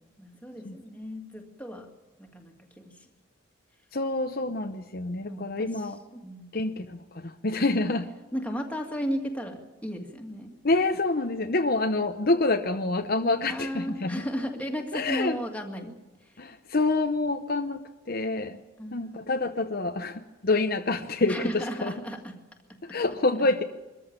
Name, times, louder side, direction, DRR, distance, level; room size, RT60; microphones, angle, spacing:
voice 1, 0.2-1.9 2.2-3.1 5.3-6.5 8.3-10.5 13.5-16.0 16.2-16.5 18.8-19.2 21.3-22.4 22.7-23.0, equal, 5° left, 2 dB, 2.1 m, -35 dB
voice 2, 3.9-6.0 6.5-8.1 10.6-14.2 14.9-15.4 16.4-17.8 18.1-18.6 18.9-21.9 22.8-23.6, left 2 dB, 45° left, 6 dB, 0.8 m, -27 dB
23.5 x 14.0 x 9.0 m, 1.1 s
head